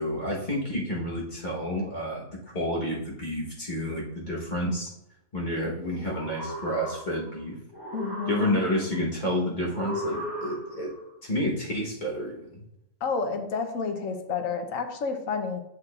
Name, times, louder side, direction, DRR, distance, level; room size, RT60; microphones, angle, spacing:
voice 1, 0.0-2.3 2.5-4.9 5.3-7.6 8.3-10.9 11.2-12.6, equal, 35° left, -3 dB, 1.4 m, -30 dB
sound 1, 5.9-7.4 7.7-9.0 9.7-11.0, equal, 20° left, 1.3 m, -36 dB
voice 2, 7.9-8.6 13.0-15.6, left 5 dB, 80° left, 6 dB, 1.2 m, -30 dB
7.8 x 6.1 x 2.4 m, 0.82 s
omnidirectional pair, 1.4 m